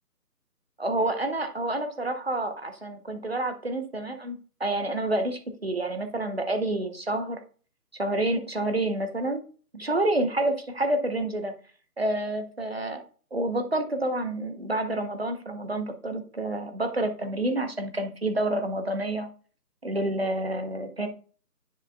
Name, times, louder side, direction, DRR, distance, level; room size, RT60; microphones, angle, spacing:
voice 1, 0.8-7.4 8.0-9.4 9.7-11.5 12.0-13.0 13.3-19.3 19.8-21.1, right 1 dB, 40° right, 7 dB, 0.9 m, -28 dB
10.0 x 4.9 x 2.2 m, 0.40 s
figure-of-eight pair, 175°, 50 cm